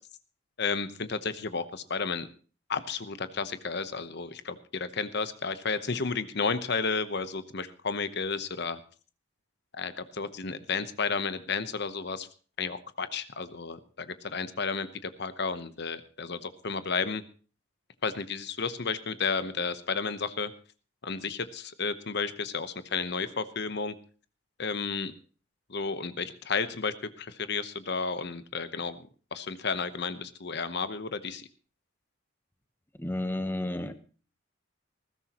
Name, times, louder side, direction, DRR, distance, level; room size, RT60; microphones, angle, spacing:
voice 1, 0.6-2.3 2.7-8.8 9.7-12.3 12.6-17.2 18.0-20.5 21.0-23.9 24.6-25.1 25.7-29.0 29.3-31.5, left 5 dB, 55° left, 12 dB, 1.0 m, -32 dB
voice 2, 33.0-33.9, left 1 dB, 10° left, 9 dB, 1.0 m, -31 dB
19.5 x 15.5 x 3.0 m, 0.39 s
head